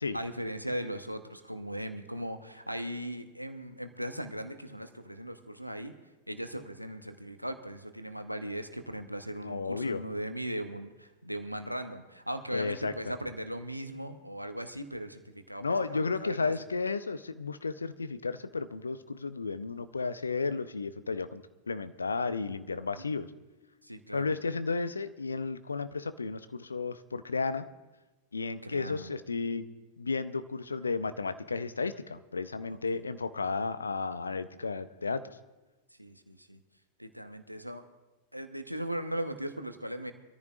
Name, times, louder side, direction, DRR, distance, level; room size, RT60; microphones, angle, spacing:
voice 1, 0.1-5.9 6.3-16.5 23.0-23.1 23.8-24.3 28.6-29.1 32.7-33.0 36.0-36.6 37.0-37.8 38.3-40.1, equal, 90° right, 8 dB, 1.0 m, -38 dB
voice 2, 9.4-10.0 12.5-13.1 15.6-23.3 24.1-27.7 28.3-29.6 30.0-35.2, left 4 dB, 75° left, 12 dB, 0.7 m, -33 dB
24.5 x 14.0 x 2.5 m, 1.1 s
figure-of-eight pair, 90°, 0 cm